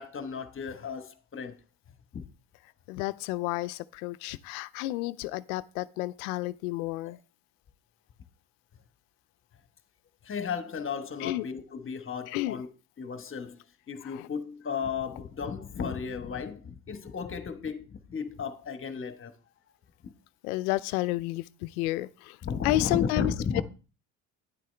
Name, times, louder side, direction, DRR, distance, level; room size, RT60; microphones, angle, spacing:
voice 1, 0.0-1.6 2.1-2.3 7.0-7.2 10.2-12.7 13.0-13.6 13.9-19.3 22.4-23.6, left 6 dB, 30° left, 1.2 m, -34 dB
voice 2, 2.9-7.2 11.2-11.5 12.3-12.6 14.1-14.2 20.4-22.4 22.6-23.6, left 17 dB, 85° left, 0.6 m, -31 dB
9.8 x 7.6 x 3.3 m
supercardioid pair, 80°, 43 cm